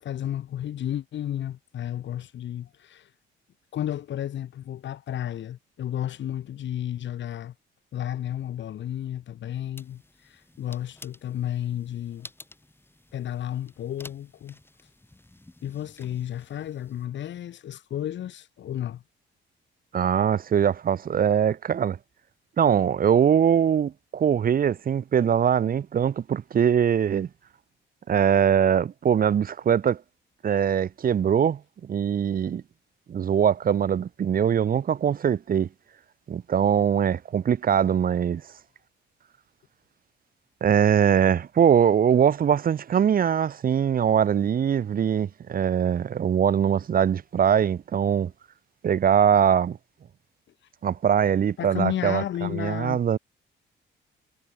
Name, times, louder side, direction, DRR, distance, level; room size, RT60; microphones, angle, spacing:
voice 1, 0.0-3.1 3.7-7.5 7.9-10.0 10.3-12.3 13.1-14.6 15.6-19.0 51.6-53.0, left 11 dB, 65° left, 1.9 m, -32 dB
sound 1, 9.8-17.1, left 1 dB, 10° left, 5.6 m, -51 dB
voice 2, 19.9-22.0 22.6-27.3 28.1-30.0 30.4-32.6 33.1-35.7 36.3-38.4 40.6-48.3 48.8-49.8 50.8-53.2, right 8 dB, 45° right, 0.9 m, -22 dB
cardioid pair, 90°, 20 cm